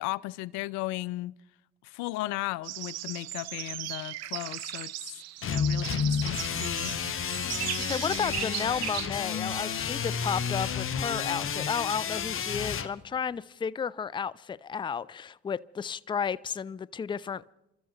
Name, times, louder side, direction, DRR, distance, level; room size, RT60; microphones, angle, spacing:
voice 1, 0.0-1.3 1.8-4.9 5.4-7.0, left 18 dB, 75° left, 0.5 m, -35 dB
sound 1, 2.6-10.1, right 15 dB, 60° right, 0.6 m, -37 dB
sound 2, 5.4-12.9, left 7 dB, 45° left, 1.2 m, -31 dB
voice 2, 7.4-17.4, left 7 dB, 15° left, 0.4 m, -33 dB
29.5 x 13.0 x 3.0 m
hypercardioid pair, 65°, 29 cm